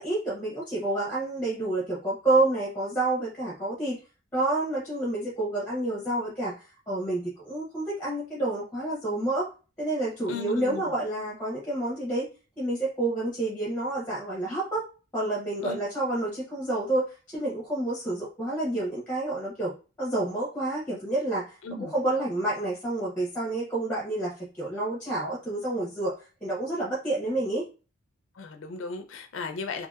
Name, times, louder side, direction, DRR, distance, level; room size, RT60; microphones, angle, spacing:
voice 1, 0.0-4.0 4.3-6.6 6.9-9.5 9.8-12.3 12.6-14.8 15.1-19.7 20.0-26.1 26.4-27.6, right 2 dB, 10° left, -5 dB, 0.8 m, -29 dB
voice 2, 10.3-11.0 15.6-15.8 21.6-21.9 28.3-29.9, left 3 dB, 70° left, 7 dB, 0.4 m, -36 dB
2.7 x 2.6 x 2.3 m, 0.34 s
head